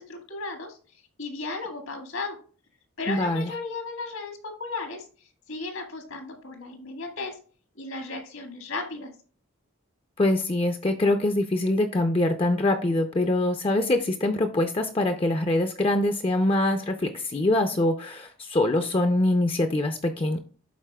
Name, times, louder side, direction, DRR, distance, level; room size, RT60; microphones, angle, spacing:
voice 1, 0.0-2.4 3.0-7.4 7.7-9.1, left 3 dB, 80° left, 4 dB, 1.7 m, -35 dB
voice 2, 3.1-3.5 10.2-20.4, left 1 dB, 25° left, 7 dB, 0.4 m, -24 dB
12.0 x 4.1 x 2.2 m, 0.43 s
head